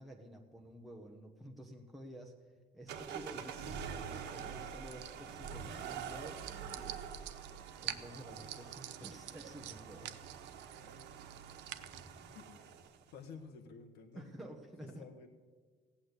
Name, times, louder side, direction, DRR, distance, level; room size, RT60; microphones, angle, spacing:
voice 1, 0.0-2.4 2.7-7.0 7.8-10.2 14.1-15.0, right 1 dB, ahead, 0 dB, 1.0 m, -51 dB
sound 1, 2.9-13.1, right 7 dB, 70° right, 1.5 m, -46 dB
sound 2, 3.3-12.1, right 12 dB, 90° right, 0.8 m, -49 dB
voice 2, 13.1-14.3 14.8-15.3, left 5 dB, 75° left, 4 dB, 1.5 m, -52 dB
16.0 x 8.7 x 8.1 m, 1.5 s
cardioid pair, 155°, 18 cm